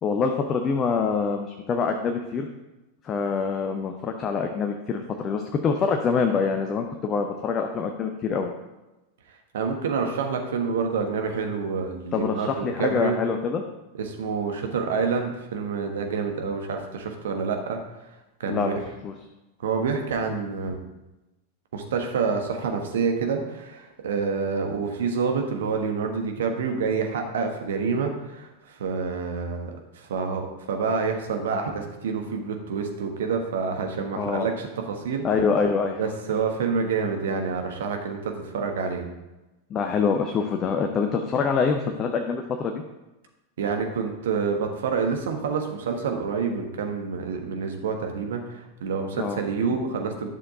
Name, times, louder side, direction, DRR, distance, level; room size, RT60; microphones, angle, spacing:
voice 1, 0.0-2.5 3.0-8.5 12.1-13.6 18.5-19.1 34.1-34.5 35.2-36.0 39.7-42.8 49.2-49.4, left 5 dB, 30° left, 4 dB, 0.7 m, -25 dB
voice 2, 9.5-13.2 14.0-17.8 18.4-18.8 19.6-20.8 21.7-35.2 36.0-39.0 43.6-50.3, right 5 dB, 60° right, 4 dB, 1.3 m, -27 dB
11.0 x 6.6 x 3.7 m, 1.0 s
figure-of-eight pair, 90°, 0 cm